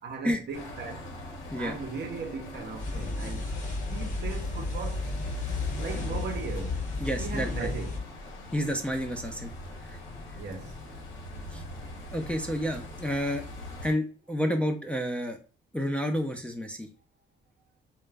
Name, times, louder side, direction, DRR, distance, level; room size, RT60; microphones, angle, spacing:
voice 1, 0.0-1.1 1.6-3.5 3.9-5.1 5.8-6.8 7.2-8.0 10.4-10.8 11.7-11.8, right 5 dB, 60° right, 0.6 m, -38 dB
sound 1, 0.5-13.9, left 2 dB, 80° left, 0.8 m, -40 dB
sound 2, 2.8-8.0, left 2 dB, 40° left, 0.9 m, -34 dB
voice 2, 7.0-7.7 8.5-9.5 9.8-10.0 11.5-11.6 12.1-13.5 13.8-15.4 15.7-16.9, equal, 5° left, 0.4 m, -30 dB
2.2 x 2.0 x 3.3 m
cardioid pair, 90°, 20 cm